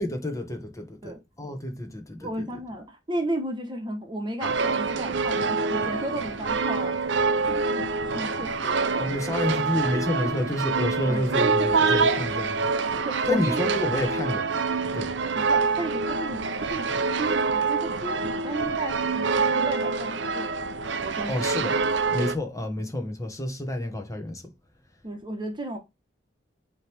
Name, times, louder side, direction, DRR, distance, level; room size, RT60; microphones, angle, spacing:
voice 1, 0.0-2.3 9.0-12.7 13.3-14.4 14.9-15.1 21.3-21.7 22.1-24.4, left 1 dB, 20° left, 1.4 m, -29 dB
voice 2, 2.2-9.1 11.1-11.3 12.9-13.6 15.3-20.6 21.0-21.5 25.0-25.8, right 1 dB, 25° right, 1.2 m, -34 dB
sound 1, 4.4-22.4, right 4 dB, 90° right, 0.7 m, -26 dB
8.7 x 3.2 x 3.5 m
head